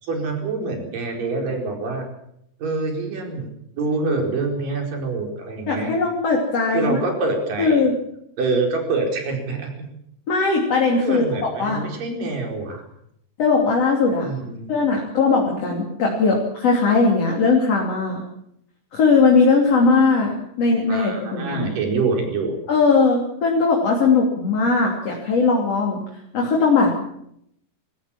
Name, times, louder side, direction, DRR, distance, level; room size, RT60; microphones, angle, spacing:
voice 1, 0.0-2.1 2.6-3.5 3.8-5.9 6.7-7.8 8.4-9.9 11.0-12.8 14.2-14.7 20.9-22.6, right 3 dB, 50° right, 2 dB, 6.0 m, -25 dB
voice 2, 5.7-7.0 7.6-7.9 10.3-11.8 13.4-14.3 14.7-18.2 18.9-21.7 22.7-26.0 26.3-26.9, left 4 dB, 35° left, -1 dB, 3.6 m, -19 dB
21.0 x 18.0 x 7.4 m, 0.74 s
omnidirectional pair, 5.2 m